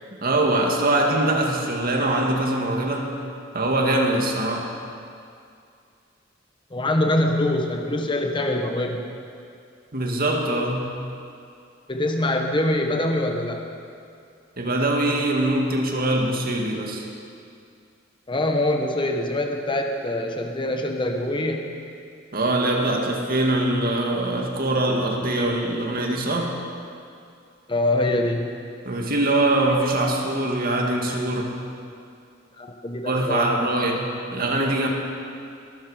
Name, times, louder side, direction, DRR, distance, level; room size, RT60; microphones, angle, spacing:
voice 1, 0.2-3.1 3.5-4.7 9.9-10.9 14.6-17.1 22.3-26.6 28.8-31.6 33.1-34.9, right 1 dB, 50° right, 1 dB, 2.1 m, -23 dB
voice 2, 6.7-9.0 11.9-13.6 18.3-21.7 27.7-28.5 32.6-33.5 33.7-34.0, left 1 dB, 25° left, 3 dB, 1.2 m, -24 dB
21.5 x 13.0 x 5.1 m, 2.4 s
head